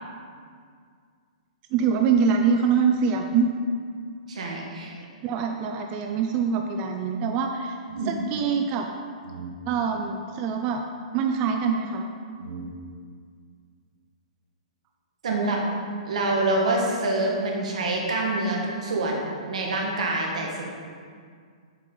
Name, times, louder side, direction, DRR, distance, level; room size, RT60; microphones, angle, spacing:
voice 1, 1.7-3.5 5.2-7.8 8.1-8.9 9.7-10.8 11.1-12.1, right 6 dB, 25° right, 3 dB, 0.4 m, -24 dB
voice 2, 4.3-4.9 7.9-8.1 9.2-9.5 12.4-12.7 15.2-15.7 16.0-20.6, right 2 dB, 75° right, -1 dB, 1.7 m, -26 dB
7.5 x 6.5 x 3.9 m, 2.1 s
hypercardioid pair, 165°, 4 cm